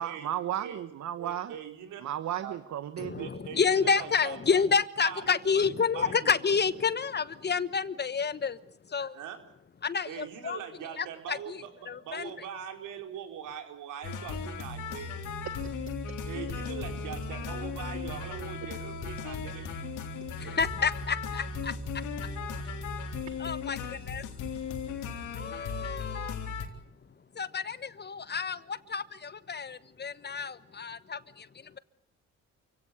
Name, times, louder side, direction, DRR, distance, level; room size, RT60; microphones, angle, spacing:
voice 1, 0.0-1.5 2.0-3.3 15.6-15.8, right 11 dB, 65° right, 12 dB, 1.3 m, -34 dB
voice 2, 1.2-2.0 2.4-2.6 3.1-4.6 5.0-5.4 5.9-6.3 9.1-9.4 10.1-15.1 16.2-19.9 22.4-22.5, right 9 dB, 85° right, 4 dB, 4.8 m, -42 dB
voice 3, 3.0-8.6 8.9-9.2 9.8-10.6 11.0-11.6 11.9-12.3 20.4-21.7 22.2-22.3 23.4-24.5 25.3-26.4 27.3-31.8, left 5 dB, 35° left, 15 dB, 1.2 m, -30 dB
sound 1, 14.0-26.7, left 4 dB, 85° left, 3.8 m, -36 dB
28.5 x 17.0 x 8.5 m, 0.73 s
cardioid pair, 90°, 30 cm